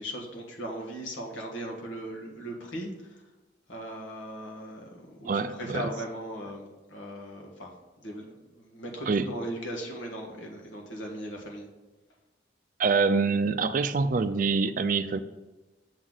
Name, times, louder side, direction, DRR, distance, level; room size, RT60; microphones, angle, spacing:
voice 1, 0.0-3.2 3.7-11.7, right 1 dB, 90° left, 1 dB, 1.6 m, -38 dB
voice 2, 5.3-5.8 9.1-9.3 12.8-15.2, right 4 dB, 45° right, 11 dB, 0.4 m, -25 dB
7.2 x 3.9 x 6.2 m, 1.1 s
head